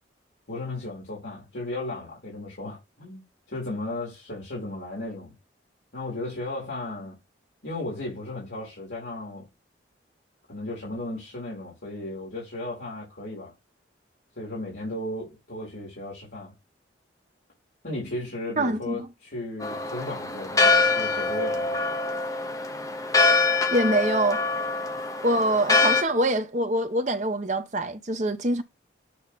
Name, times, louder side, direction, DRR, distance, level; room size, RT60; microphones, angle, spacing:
voice 1, 0.5-5.3 5.9-7.2 7.6-9.5 10.5-13.5 14.4-16.5 17.8-21.9, left 2 dB, 65° left, 3.6 m, -35 dB
voice 2, 18.6-19.1 23.7-24.4 25.2-28.6, right 1 dB, 40° right, 1.0 m, -24 dB
Church bell, 19.6-26.0, left 3 dB, 15° left, 0.9 m, -24 dB
8.6 x 3.3 x 4.2 m
head